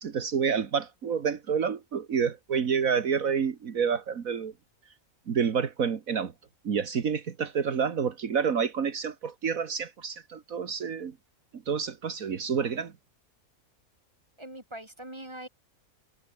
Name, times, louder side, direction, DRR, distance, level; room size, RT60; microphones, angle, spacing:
voice 1, 0.0-4.5 5.3-6.3 6.6-11.2 11.5-12.9, right 6 dB, 70° right, 1.9 m, -28 dB
voice 2, 14.4-15.5, right 1 dB, 20° right, 5.2 m, -42 dB
omnidirectional pair, 1.5 m